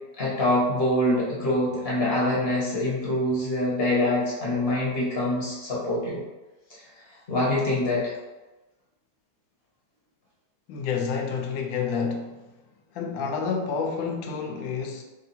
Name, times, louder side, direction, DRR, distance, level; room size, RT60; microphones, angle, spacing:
voice 1, 0.2-6.2 6.7-6.8 7.3-8.1, left 1 dB, 35° left, -6 dB, 1.2 m, -25 dB
voice 2, 10.7-12.4 12.9-15.0, left 5 dB, 85° left, 3 dB, 1.3 m, -29 dB
3.3 x 2.8 x 4.1 m, 1.1 s
omnidirectional pair, 2.0 m